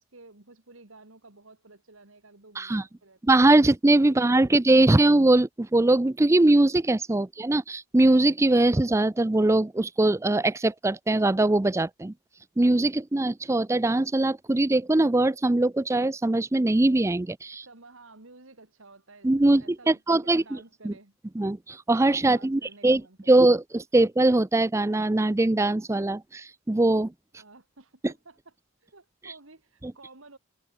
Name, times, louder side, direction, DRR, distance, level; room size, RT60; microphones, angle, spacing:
voice 1, 0.0-3.6 17.6-21.2 22.2-23.6 27.3-28.5 28.8-30.4, right 3 dB, 65° right, 2.4 m, -52 dB
voice 2, 3.2-12.1 12.6-17.7 19.2-20.6 20.8-20.9 21.4-23.0 23.3-27.1, right 2 dB, 15° right, 0.4 m, -21 dB
head